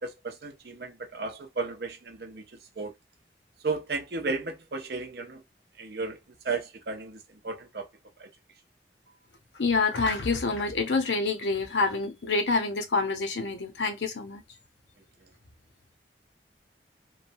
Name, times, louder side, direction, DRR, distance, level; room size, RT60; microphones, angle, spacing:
voice 1, 0.0-2.4 2.8-2.9 3.6-5.4 5.8-6.2 6.4-7.2 7.4-7.9 8.2-8.3, right 3 dB, 65° right, 0.6 m, -34 dB
voice 2, 9.6-14.4, left 3 dB, 90° left, 0.7 m, -27 dB
3.1 x 2.1 x 2.6 m
head